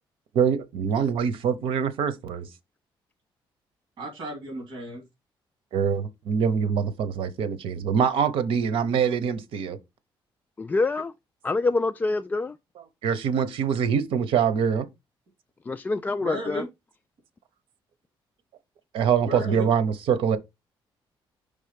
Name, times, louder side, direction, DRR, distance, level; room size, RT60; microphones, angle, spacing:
voice 1, 0.3-2.5 5.7-9.8 13.0-14.9 18.9-20.4, right 7 dB, 85° right, 0.9 m, -24 dB
voice 2, 4.0-5.0 16.2-16.7 19.2-19.7, equal, 65° right, 2.7 m, -34 dB
voice 3, 10.6-11.1 11.4-12.5 15.7-16.6, left 3 dB, 20° left, 0.3 m, -26 dB
5.4 x 3.5 x 5.2 m
cardioid pair, 130°, 9 cm